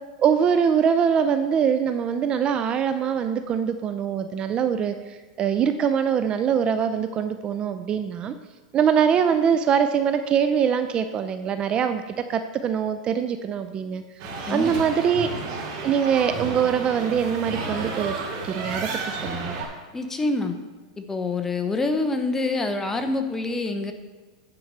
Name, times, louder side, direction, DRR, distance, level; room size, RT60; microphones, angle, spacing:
voice 1, 0.2-8.3 8.7-14.0 14.5-15.3 15.8-18.1 18.4-19.6, right 7 dB, 30° right, 9 dB, 0.5 m, -23 dB
sound 1, 14.2-19.6, right 3 dB, 60° right, 3.0 m, -32 dB
voice 2, 19.9-20.6 21.0-23.9, left 3 dB, 10° left, 6 dB, 0.8 m, -26 dB
9.8 x 4.6 x 6.6 m, 1.4 s
supercardioid pair, 135°, 3 cm